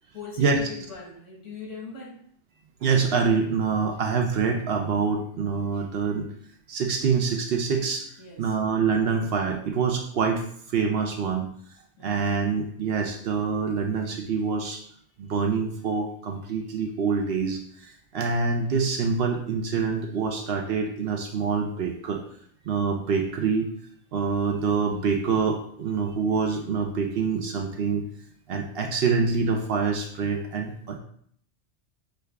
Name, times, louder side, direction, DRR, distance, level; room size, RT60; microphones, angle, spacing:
voice 1, 0.1-2.2 8.2-8.5 12.0-12.2, left 4 dB, 75° left, -1 dB, 1.6 m, -40 dB
voice 2, 2.8-6.3 6.7-8.1 8.4-10.4 10.7-11.5 12.0-14.8 15.2-22.2 22.7-23.7 24.1-28.0 28.5-31.0, right 5 dB, 65° right, 3 dB, 0.7 m, -26 dB
6.4 x 2.3 x 3.3 m, 0.64 s
omnidirectional pair, 1.3 m